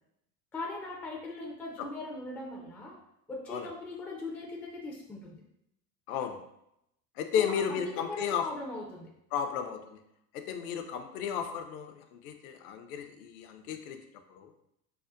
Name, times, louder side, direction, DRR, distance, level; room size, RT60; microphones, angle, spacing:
voice 1, 0.5-3.0 3.3-5.4 7.3-9.1, left 2 dB, 5° left, -2 dB, 0.3 m, -40 dB
voice 2, 6.1-6.4 7.2-8.4 9.3-10.0 10.3-14.0 14.3-14.5, left 8 dB, 60° left, 6 dB, 0.6 m, -33 dB
5.5 x 2.1 x 2.4 m, 0.81 s
figure-of-eight pair, 80°, 49 cm